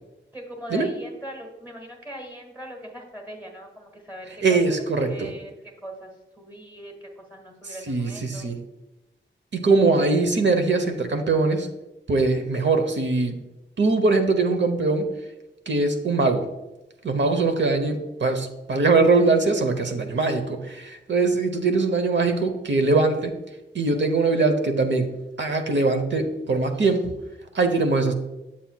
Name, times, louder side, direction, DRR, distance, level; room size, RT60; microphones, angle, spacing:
voice 1, 0.3-6.1 6.4-8.5, equal, 10° right, 1 dB, 1.4 m, -40 dB
voice 2, 4.4-5.3 7.9-8.6 9.5-11.7 12.1-13.4 13.8-15.1 15.7-16.4 17.0-23.3 23.7-25.1 25.4-27.1 27.5-28.1, right 3 dB, 65° right, 6 dB, 0.8 m, -22 dB
8.4 x 7.6 x 2.3 m, 1.0 s
wide cardioid pair, 130°, 20 cm